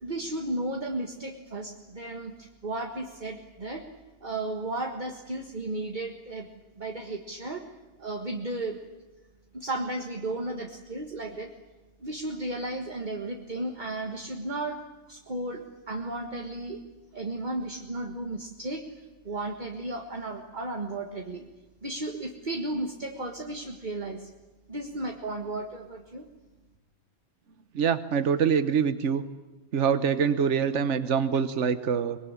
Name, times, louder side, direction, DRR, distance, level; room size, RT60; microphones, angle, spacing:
voice 1, 0.0-3.9 4.2-6.5 6.8-7.6 8.0-8.8 9.5-11.5 12.0-14.8 15.1-16.8 17.1-21.5 21.8-24.3 24.7-26.3, right 2 dB, 40° right, 3 dB, 1.8 m, -34 dB
voice 2, 27.7-29.2 29.7-32.2, right 7 dB, 80° right, 11 dB, 1.3 m, -25 dB
24.0 x 22.0 x 9.9 m, 1.2 s
omnidirectional pair, 1.2 m